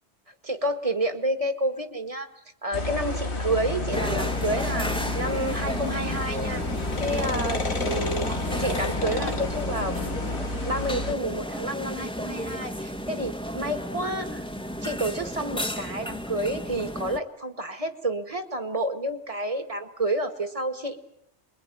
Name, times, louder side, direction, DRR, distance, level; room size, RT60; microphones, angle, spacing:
voice 1, 0.4-2.3 2.6-6.6 7.0-8.3 8.6-10.0 10.6-14.4 14.8-21.0, right 1 dB, 30° right, 7 dB, 2.0 m, -29 dB
sound 1, 2.7-11.1, left 2 dB, 55° left, 1.8 m, -30 dB
sound 2, 3.5-10.4, left 4 dB, 30° left, 1.1 m, -37 dB
sound 3, 3.9-17.2, equal, 5° left, 1.2 m, -33 dB
27.0 x 22.5 x 9.2 m, 0.76 s
omnidirectional pair, 1.1 m